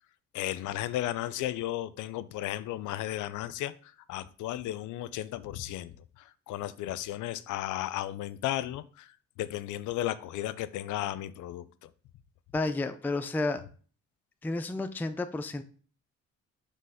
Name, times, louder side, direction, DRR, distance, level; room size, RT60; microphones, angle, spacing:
voice 1, 0.3-11.9, left 14 dB, 80° left, 0.5 m, -34 dB
voice 2, 12.5-13.6 14.4-15.6, left 2 dB, 5° left, 0.4 m, -31 dB
5.3 x 3.3 x 5.6 m
cardioid pair, 90°, 30 cm